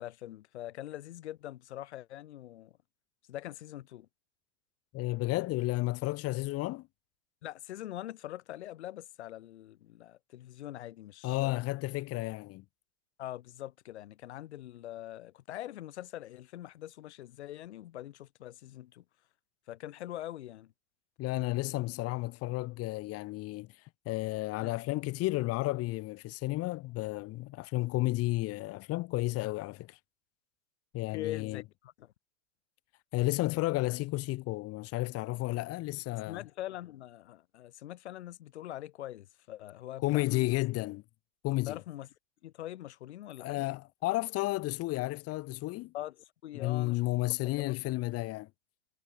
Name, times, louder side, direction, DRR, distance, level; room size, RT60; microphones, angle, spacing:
voice 1, 0.0-2.8 3.3-4.1 7.4-11.6 13.2-19.0 19.7-20.7 24.6-24.8 31.1-32.1 36.3-40.5 41.7-42.1 42.4-43.7 45.9-47.0 47.6-47.7, left 13 dB, 70° left, 2.9 m, -43 dB
voice 2, 4.9-6.9 11.2-12.6 21.2-23.7 24.1-30.0 30.9-31.6 33.1-36.4 40.0-41.0 41.4-41.8 43.4-45.9 46.5-48.5, left 19 dB, 40° left, 4.5 m, -32 dB
hypercardioid pair, 105°, 35 cm